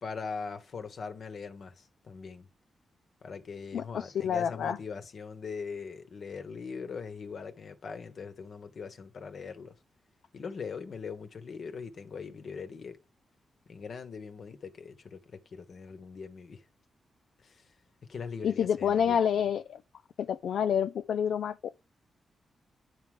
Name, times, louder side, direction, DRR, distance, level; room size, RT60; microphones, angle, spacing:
voice 1, 0.0-2.5 3.2-9.8 10.3-13.0 13.7-16.6 17.4-17.6 18.1-19.2, left 5 dB, 65° left, 1.3 m, -41 dB
voice 2, 3.7-4.8 18.4-19.8 20.2-21.6, left 8 dB, 85° left, 0.4 m, -28 dB
10.0 x 4.8 x 3.7 m
cardioid pair, 70°, 0 cm